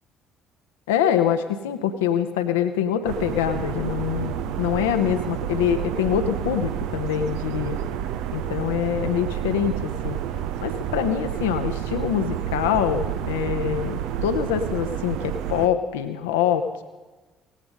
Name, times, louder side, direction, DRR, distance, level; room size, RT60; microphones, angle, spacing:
voice 1, 0.9-7.8 8.3-10.2 10.6-16.8, left 9 dB, 70° left, 8 dB, 1.0 m, -24 dB
sound 1, 3.1-15.7, right 10 dB, 60° right, 0.7 m, -29 dB
18.5 x 15.0 x 5.2 m, 1.2 s
figure-of-eight pair, 50°, 0 cm